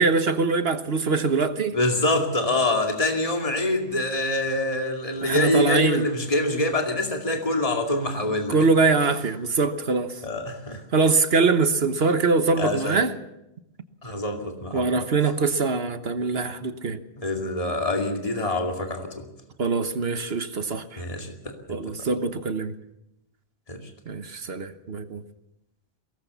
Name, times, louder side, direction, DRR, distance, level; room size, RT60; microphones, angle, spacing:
voice 1, 0.0-1.8 5.2-6.0 8.5-10.2 10.9-13.1 14.7-17.0 19.6-21.0 21.7-22.7 24.1-25.2, right 4 dB, 60° right, 1.4 m, -23 dB
voice 2, 1.7-8.6 10.2-10.8 12.6-13.0 14.0-15.1 17.2-19.3 21.0-22.1 23.7-23.8, left 2 dB, 30° left, 2.5 m, -25 dB
22.5 x 18.5 x 7.0 m
omnidirectional pair, 1.1 m